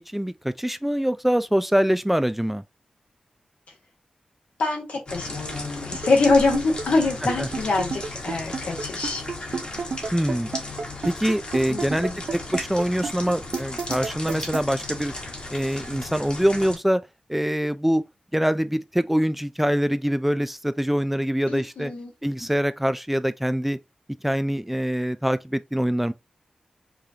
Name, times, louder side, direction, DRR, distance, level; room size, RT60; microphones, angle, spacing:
voice 1, 0.0-2.6 10.1-10.5 11.0-15.1 15.5-17.0 17.3-18.0 18.3-21.9 22.2-23.8 24.2-26.1, equal, 5° right, 0.4 m, -24 dB
voice 2, 4.6-9.2 11.7-12.2 21.5-22.1, left 3 dB, 85° left, 1.4 m, -24 dB
sound 1, 5.1-16.8, left 2 dB, 45° left, 1.4 m, -35 dB
sound 2, 5.9-14.6, right 5 dB, 70° right, 0.6 m, -30 dB
4.9 x 2.3 x 2.8 m
cardioid pair, 50°, 2 cm